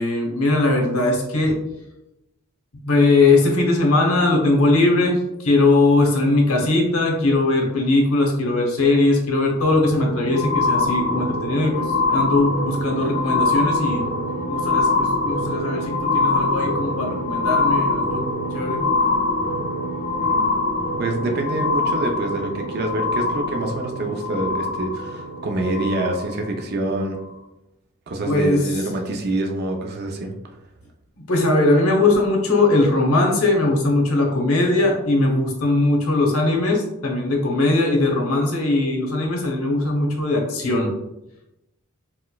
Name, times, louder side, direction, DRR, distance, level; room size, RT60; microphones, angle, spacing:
voice 1, 0.0-1.6 2.8-14.0 14.5-18.2 18.5-18.8 28.2-28.7 31.2-40.9, left 2 dB, 85° left, 1 dB, 0.8 m, -20 dB
sound 1, 9.6-26.5 27.2-27.3, left 2 dB, 40° left, 0.5 m, -24 dB
voice 2, 20.2-20.5 21.0-27.2 28.1-30.3, right 2 dB, 50° right, 2 dB, 0.4 m, -26 dB
4.2 x 2.1 x 2.2 m, 0.90 s
head